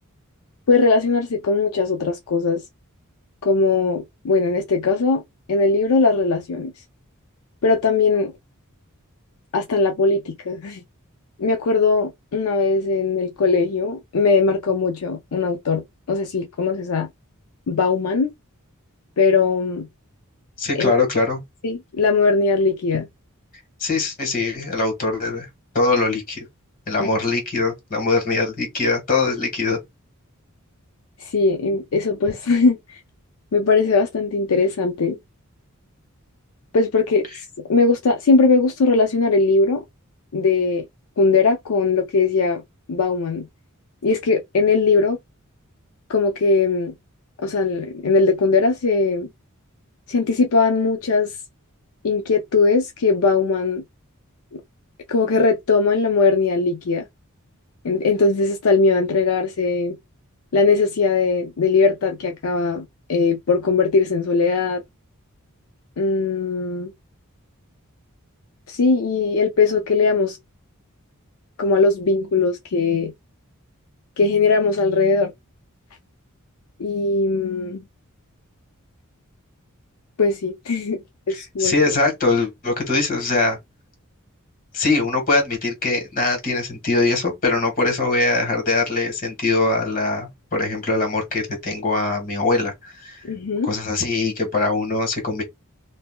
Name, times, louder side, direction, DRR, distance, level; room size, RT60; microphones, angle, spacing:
voice 1, 0.7-2.6 3.4-5.2 5.5-6.7 7.6-8.3 9.5-10.8 11.4-17.1 17.7-18.3 19.2-19.9 20.8-21.1 21.6-23.1 27.0-27.1 31.2-32.8 33.5-35.2 36.7-37.3 37.7-39.8 40.3-40.8 41.2-42.6 42.9-43.5 44.0-45.2 46.1-46.9 47.4-49.3 50.1-51.3 52.0-53.8 54.5-54.6 55.1-57.0 57.8-60.0 60.5-64.8 66.0-66.9 68.7-70.4 71.6-73.1 74.2-75.3 76.8-77.8 80.2-81.0 81.3-81.8 93.2-93.7, left 4 dB, 75° left, 0.5 m, -19 dB
voice 2, 20.6-21.4 23.8-25.5 25.8-26.4 26.9-29.8 81.3-83.6 84.7-93.2 93.6-95.4, left 3 dB, 40° left, 1.6 m, -22 dB
3.5 x 2.7 x 2.2 m
head